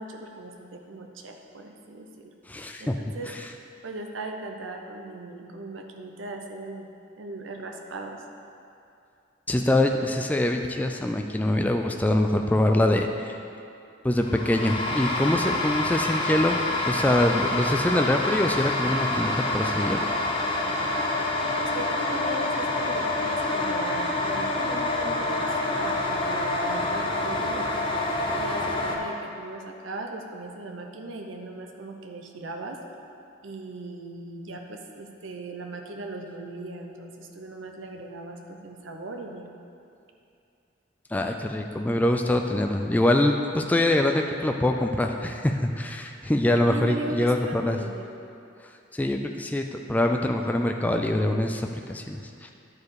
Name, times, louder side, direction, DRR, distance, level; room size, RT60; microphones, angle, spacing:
voice 1, 0.0-2.3 2.8-3.3 3.8-6.9 7.2-8.2 21.6-27.7 28.3-32.8 33.4-39.5 46.7-48.0, right 2 dB, 85° right, 3 dB, 0.7 m, -38 dB
voice 2, 2.5-2.9 9.5-13.4 14.0-16.6 16.9-20.0 41.1-47.8 48.9-49.6 49.9-52.5, left 1 dB, 10° left, 4 dB, 0.3 m, -24 dB
sound 1, 14.2-29.0, left 2 dB, 30° left, 0.8 m, -27 dB
10.5 x 4.8 x 4.8 m, 2.6 s
head